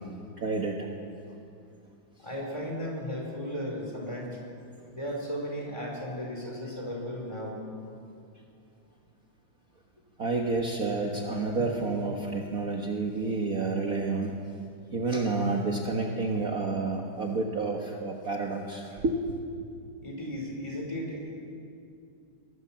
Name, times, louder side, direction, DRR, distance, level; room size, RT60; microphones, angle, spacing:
voice 1, 0.4-0.9 10.2-14.4 14.9-19.3, right 3 dB, 45° right, 0 dB, 1.8 m, -29 dB
voice 2, 2.2-4.4 4.9-7.6 20.0-21.3, equal, 15° left, -1 dB, 4.9 m, -35 dB
23.5 x 19.5 x 7.4 m, 2.5 s
omnidirectional pair, 2.3 m